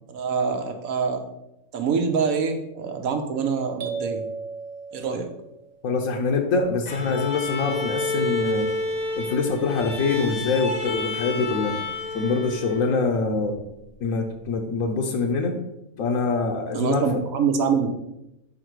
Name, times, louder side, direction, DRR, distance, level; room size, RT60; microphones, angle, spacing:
voice 1, 0.1-1.2 1.7-4.2 4.9-5.3 16.7-17.9, right 6 dB, 85° right, 5 dB, 1.2 m, -25 dB
sound 1, 3.8-5.7, right 4 dB, 55° right, 1.0 m, -34 dB
voice 2, 5.8-8.7 9.2-11.8 12.1-13.6 14.0-15.6 16.0-17.2, left 4 dB, 75° left, 3 dB, 1.1 m, -24 dB
Bowed string instrument, 6.9-13.2, left 2 dB, 40° left, 0.7 m, -30 dB
5.1 x 4.1 x 4.5 m, 0.87 s
omnidirectional pair, 1.5 m